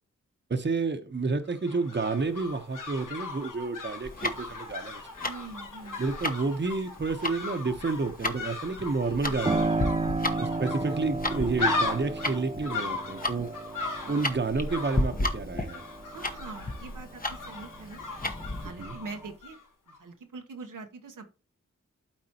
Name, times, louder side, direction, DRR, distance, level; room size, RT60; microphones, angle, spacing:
voice 1, 0.5-5.3 6.0-9.9 10.4-13.5 14.1-15.8 18.8-19.0, right 3 dB, 35° right, 8 dB, 1.0 m, -30 dB
sound 1, 1.5-19.6 19.9-20.0, left 3 dB, 85° left, 1.3 m, -37 dB
Tick-tock, 4.0-18.7, left 2 dB, 30° left, 1.0 m, -34 dB
voice 2, 5.2-6.0 9.0-9.4 10.2-10.7 14.0-14.4 16.1-18.0 18.6-19.6 19.9-21.3, right 3 dB, 85° right, 3 dB, 1.1 m, -44 dB
Piano, 9.5-17.9 18.3-19.3, right 3 dB, 20° right, 0.5 m, -34 dB
12.0 x 4.2 x 2.9 m, 0.34 s
cardioid pair, 45°, 31 cm